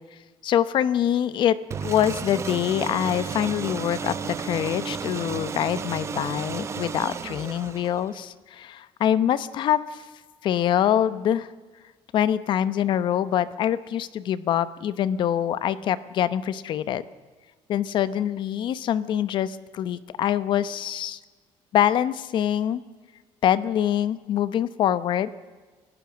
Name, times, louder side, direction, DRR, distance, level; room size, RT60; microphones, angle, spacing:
voice 1, 0.4-10.0 10.4-11.5 12.1-17.0 17.7-21.2 21.7-22.8 23.4-25.3, left 10 dB, 55° left, 15 dB, 1.0 m, -24 dB
sound 1, 1.7-8.2, right 6 dB, 30° right, 0.8 m, -33 dB
29.5 x 16.5 x 6.3 m, 1.4 s
cardioid pair, 160°, 10 cm